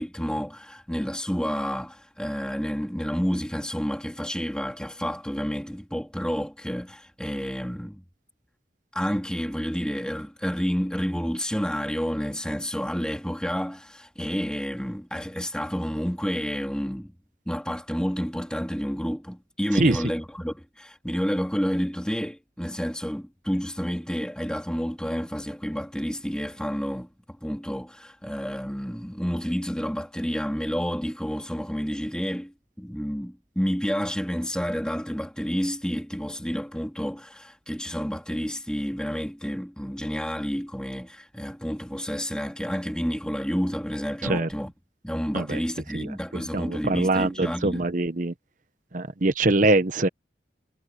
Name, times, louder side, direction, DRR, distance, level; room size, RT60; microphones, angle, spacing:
voice 1, 0.0-8.0 8.9-17.1 17.5-44.7 45.0-47.9, equal, 5° left, 3.8 m, -30 dB
voice 2, 45.9-48.3 48.9-50.1, right 2 dB, 45° right, 0.9 m, -23 dB
head